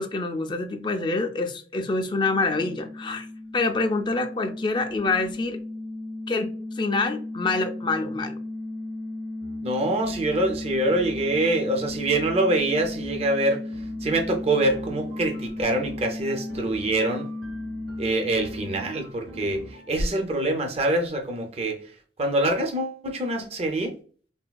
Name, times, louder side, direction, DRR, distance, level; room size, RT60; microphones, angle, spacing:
voice 1, 0.0-3.3 3.5-5.6 6.3-8.3, left 3 dB, 25° left, 0.3 m, -26 dB
sound 1, 2.0-19.5, left 2 dB, 85° left, 0.5 m, -35 dB
sound 2, 9.4-9.6 10.0-11.4 11.9-12.4 12.8-13.3 13.7-20.0, right 1 dB, 80° right, 0.8 m, -45 dB
voice 2, 9.6-17.3 18.0-23.9, right 2 dB, 35° right, 0.4 m, -25 dB
3.3 x 2.2 x 2.2 m
head